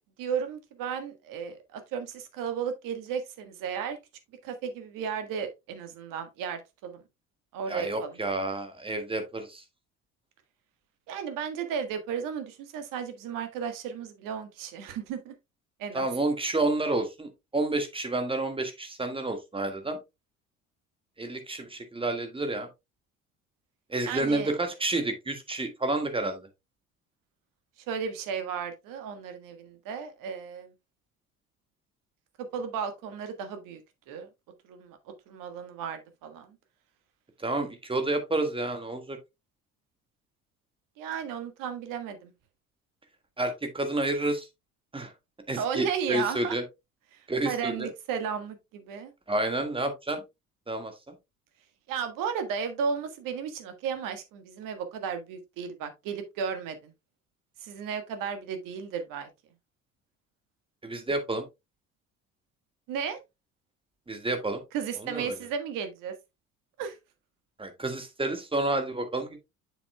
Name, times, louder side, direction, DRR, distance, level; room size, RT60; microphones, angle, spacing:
voice 1, 0.2-4.0 4.4-7.0 7.5-8.2 11.1-15.3 15.8-16.1 24.1-24.5 27.9-30.7 32.4-33.8 34.1-34.3 34.6-35.0 35.3-36.6 41.0-42.3 45.5-46.6 47.1-49.1 51.9-56.9 57.6-59.3 62.9-63.2 64.7-66.1 66.8-67.0, right 7 dB, 50° right, 1.5 m, -34 dB
voice 2, 7.7-9.6 15.9-20.0 21.2-22.7 23.9-26.5 37.4-39.2 43.4-44.5 44.9-45.1 45.5-46.6 47.3-47.9 49.3-50.2 50.7-50.9 60.8-61.4 64.1-64.6 65.0-65.3 67.6-69.4, right 2 dB, 15° right, 1.7 m, -30 dB
7.8 x 7.1 x 2.2 m
figure-of-eight pair, 55°, 41 cm